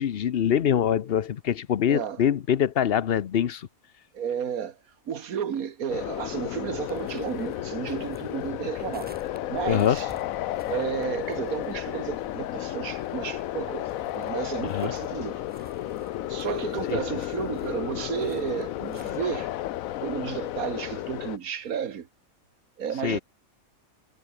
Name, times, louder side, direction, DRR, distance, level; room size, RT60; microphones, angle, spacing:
voice 1, 0.0-3.6 9.7-10.0 14.7-14.9 23.0-23.2, left 9 dB, 55° left, 0.8 m, -24 dB
voice 2, 1.9-2.2 4.1-4.8 5.1-9.1 9.5-10.1 10.7-15.4 16.3-19.5 20.0-22.1 22.8-23.2, right 8 dB, 90° right, 1.7 m, -32 dB
sound 1, 5.9-21.4, left 14 dB, 75° left, 1.0 m, -33 dB
sound 2, 6.9-19.4, equal, 5° right, 6.1 m, -52 dB
omnidirectional pair, 1.5 m